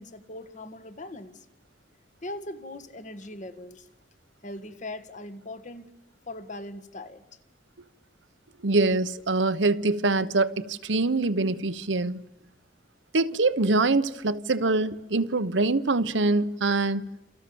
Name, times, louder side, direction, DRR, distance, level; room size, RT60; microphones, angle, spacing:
voice 1, 0.0-1.4 2.2-3.9 4.4-5.9 6.3-7.2, left 1 dB, 45° left, 1.8 m, -40 dB
voice 2, 8.6-12.2 13.1-17.0, right 3 dB, 90° right, 1.1 m, -24 dB
30.0 x 27.5 x 7.1 m
head